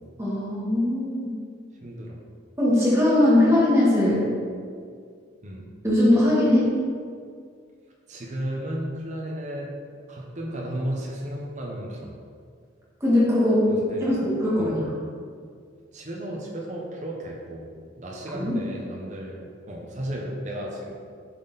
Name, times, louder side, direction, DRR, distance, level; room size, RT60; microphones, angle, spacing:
voice 1, 0.2-1.3 2.6-4.2 5.8-6.7 13.0-13.7 14.0-14.9 18.4-18.6, left 1 dB, 15° right, -8 dB, 1.5 m, -20 dB
voice 2, 1.8-2.2 5.4-5.7 8.1-9.7 10.1-12.1 13.7-14.2 14.6-14.8 15.9-17.7 18.0-21.0, right 1 dB, 40° right, -2 dB, 0.8 m, -34 dB
7.1 x 4.2 x 4.0 m, 2.1 s
head